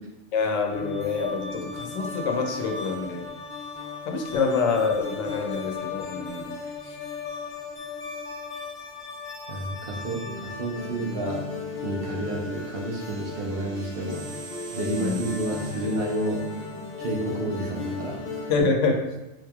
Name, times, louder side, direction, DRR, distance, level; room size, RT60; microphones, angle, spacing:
voice 1, 0.3-3.3 4.0-6.5 6.8-7.0 15.0-15.3 18.5-19.0, left 4 dB, 85° left, 2 dB, 1.0 m, -26 dB
sound 1, 0.7-18.6, left 4 dB, 55° left, 0.9 m, -36 dB
voice 2, 9.5-11.4 11.8-14.2 14.7-16.4 17.0-18.2, right 1 dB, 55° right, -2 dB, 0.9 m, -30 dB
sound 2, 11.0-16.9, right 6 dB, 80° right, 1.0 m, -47 dB
4.7 x 3.1 x 2.3 m, 0.97 s
omnidirectional pair, 1.3 m